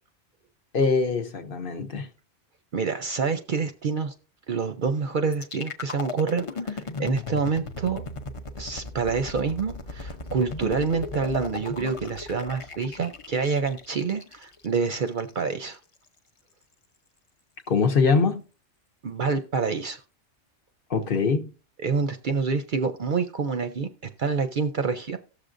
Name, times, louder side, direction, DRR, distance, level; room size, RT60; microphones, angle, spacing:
voice 1, 0.7-2.1 17.7-18.4 20.9-21.5, left 4 dB, 55° left, 0.9 m, -23 dB
voice 2, 2.7-4.1 4.5-8.0 8.6-15.8 19.0-20.0 21.8-23.9 24.2-25.2, right 5 dB, 55° right, 0.6 m, -27 dB
sound 1, 5.3-15.3, left 4 dB, 35° left, 0.5 m, -36 dB
18.0 x 6.6 x 2.5 m
omnidirectional pair, 1.2 m